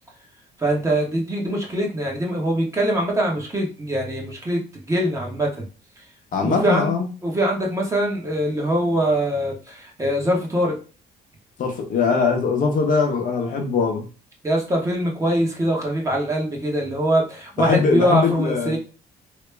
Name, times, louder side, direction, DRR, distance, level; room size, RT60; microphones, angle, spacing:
voice 1, 0.6-4.6 4.9-5.6 6.4-6.9 7.2-10.8 14.4-18.8, right 1 dB, 20° right, -1 dB, 1.3 m, -23 dB
voice 2, 6.3-7.1 11.6-14.1 17.6-18.8, left 5 dB, 55° left, 2 dB, 0.9 m, -21 dB
3.0 x 2.8 x 3.4 m, 0.34 s
cardioid pair, 110°, 17 cm